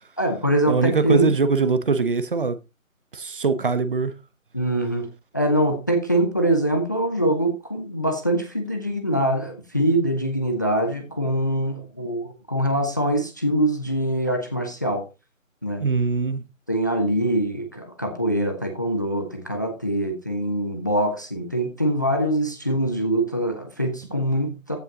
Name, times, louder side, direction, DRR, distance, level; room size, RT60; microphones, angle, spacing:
voice 1, 0.2-1.3 4.5-15.0 15.6-15.8 16.7-24.8, right 1 dB, 15° left, 0.7 m, -23 dB
voice 2, 0.7-2.6 3.1-4.1 15.8-16.4, right 4 dB, 40° right, 1.1 m, -22 dB
15.0 x 5.6 x 3.8 m
figure-of-eight pair, 165°, 41 cm